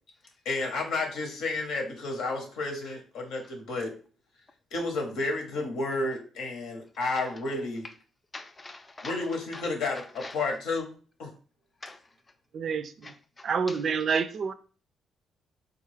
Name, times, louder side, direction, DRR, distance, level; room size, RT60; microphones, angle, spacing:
voice 1, 0.4-3.9 4.7-7.8 9.0-10.9 11.2-11.3, left 3 dB, 85° left, 0.9 m, -31 dB
voice 2, 8.3-9.2 9.5-9.7 9.9-10.4 11.8-12.1 13.0-13.8, left 2 dB, 25° left, 0.4 m, -44 dB
voice 3, 12.5-12.9 13.4-14.5, right 6 dB, 55° right, 0.3 m, -27 dB
3.6 x 2.3 x 3.2 m
cardioid pair, 90°, 0 cm